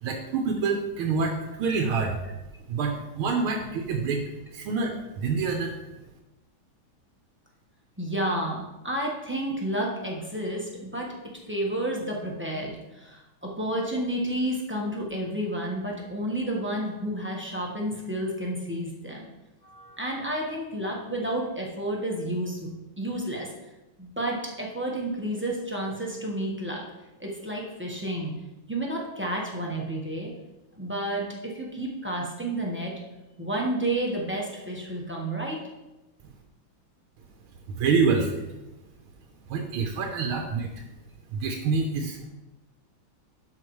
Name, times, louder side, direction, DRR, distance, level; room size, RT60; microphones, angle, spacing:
voice 1, 0.0-2.2 2.7-5.7 37.7-38.5 39.5-40.7 41.3-42.2, right 4 dB, 85° right, 3 dB, 1.6 m, -27 dB
voice 2, 8.0-11.1 11.5-19.2 19.6-23.5 24.0-26.8 27.2-28.3 28.7-30.3 30.8-32.9 33.4-35.6, right 1 dB, 10° right, -3 dB, 0.7 m, -31 dB
12.0 x 5.2 x 3.1 m, 1.0 s
omnidirectional pair, 2.3 m